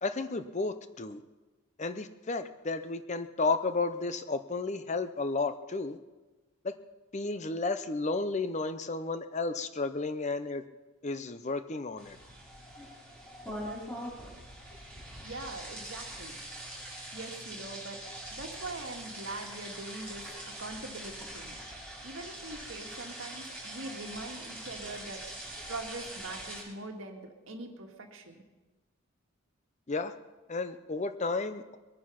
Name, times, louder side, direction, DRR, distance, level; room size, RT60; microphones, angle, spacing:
voice 1, 0.0-1.2 1.8-6.0 6.6-6.8 7.1-10.6 11.0-12.2 29.9-30.1 30.5-31.8, left 3 dB, 35° left, 11 dB, 0.6 m, -32 dB
sound 1, 12.0-26.6, right 1 dB, 5° left, 5.4 m, -43 dB
voice 2, 15.2-16.4 17.1-20.3 20.6-21.6 22.0-25.4 25.6-28.4, right 2 dB, 65° right, 2 dB, 2.0 m, -42 dB
22.0 x 9.5 x 5.8 m, 1.2 s
head